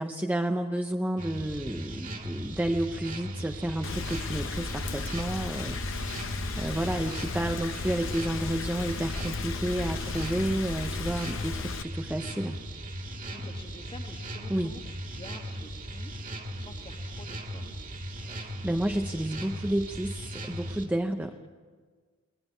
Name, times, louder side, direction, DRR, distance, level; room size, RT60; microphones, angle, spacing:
voice 1, 0.0-5.8 6.1-12.6 14.5-14.7 18.2-21.5, right 1 dB, 5° right, 5 dB, 0.6 m, -31 dB
sound 1, 1.2-20.9, right 1 dB, 35° right, 2.1 m, -38 dB
Rain, 3.8-11.8, left 4 dB, 60° left, 0.8 m, -35 dB
voice 2, 13.3-17.8 21.2-21.5, left 2 dB, 25° left, 5 dB, 1.5 m, -49 dB
20.5 x 19.0 x 8.2 m, 1.5 s
head